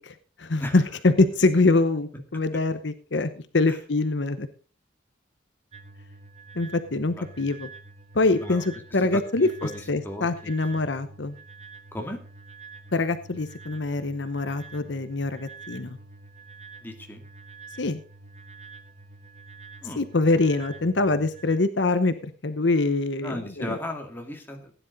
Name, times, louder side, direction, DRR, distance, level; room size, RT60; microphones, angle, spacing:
voice 1, 0.0-4.5 6.6-7.7 8.1-11.4 12.9-16.0 17.8-18.0 20.0-23.8, left 3 dB, 65° left, 11 dB, 0.9 m, -24 dB
sound 1, 5.7-21.6, right 3 dB, 35° right, 1.4 m, -47 dB
voice 2, 9.1-10.5 11.9-12.2 16.8-17.2 19.8-20.0 23.2-24.7, left 1 dB, 10° left, 2 dB, 2.3 m, -36 dB
16.5 x 10.5 x 3.9 m, 0.37 s
head